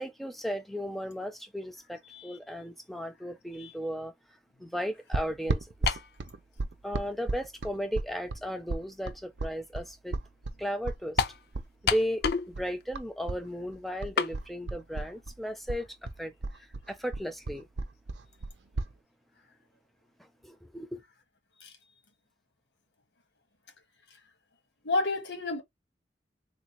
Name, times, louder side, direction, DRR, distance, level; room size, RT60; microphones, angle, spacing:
voice 1, 0.0-4.1 4.6-6.0 6.8-10.2 10.6-11.2 11.8-17.7 20.2-21.0, equal, ahead, 0.5 m, -35 dB
sound 1, 5.1-13.4 13.7-15.4 15.7-18.9, right 3 dB, 85° right, 0.6 m, -34 dB
sound 2, 5.9-6.1 7.0-7.1 11.2-11.4 11.9-12.5 12.8-12.9 14.2-14.4, left 6 dB, 60° left, 0.4 m, -28 dB
voice 2, 24.8-25.6, left 2 dB, 85° left, 1.3 m, -30 dB
3.7 x 2.3 x 3.0 m
head